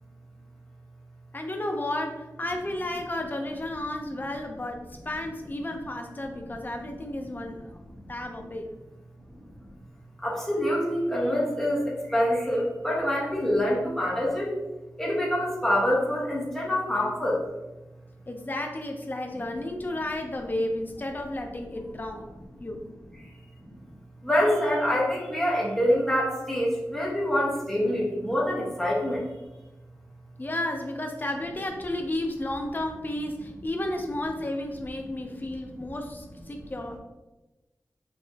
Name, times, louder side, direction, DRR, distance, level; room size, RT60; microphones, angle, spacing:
voice 1, 1.3-7.8 8.1-8.7 18.3-22.3 22.6-22.9 30.4-37.0, left 1 dB, 30° left, 3 dB, 0.5 m, -32 dB
voice 2, 10.2-14.5 15.0-17.4 23.6-23.7 24.2-29.2, equal, 5° left, -5 dB, 1.3 m, -25 dB
4.7 x 3.2 x 2.8 m, 1.1 s
wide cardioid pair, 80°, 7 cm